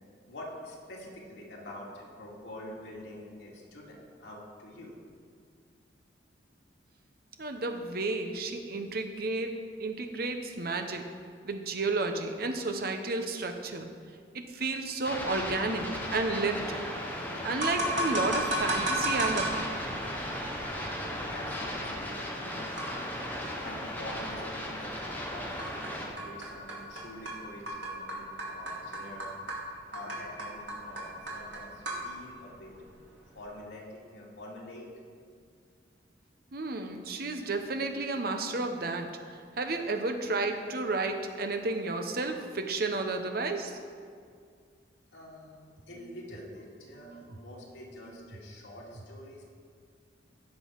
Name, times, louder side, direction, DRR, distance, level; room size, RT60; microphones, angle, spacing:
voice 1, 0.3-4.9 21.0-23.0 23.6-29.3 29.9-32.9 33.3-34.9 45.1-49.4, left 1 dB, 85° left, -4 dB, 2.6 m, -46 dB
voice 2, 7.4-11.1 11.4-13.9 14.3-16.9 17.4-19.7 36.5-39.1 39.6-43.8 46.9-47.2 48.1-48.2, right 3 dB, 55° right, 5 dB, 0.9 m, -32 dB
sound 1, 15.0-26.1, left 1 dB, 10° left, 1.3 m, -36 dB
sound 2, 17.6-33.5, right 1 dB, 80° right, 2.4 m, -36 dB
16.0 x 6.3 x 4.7 m, 2.1 s
head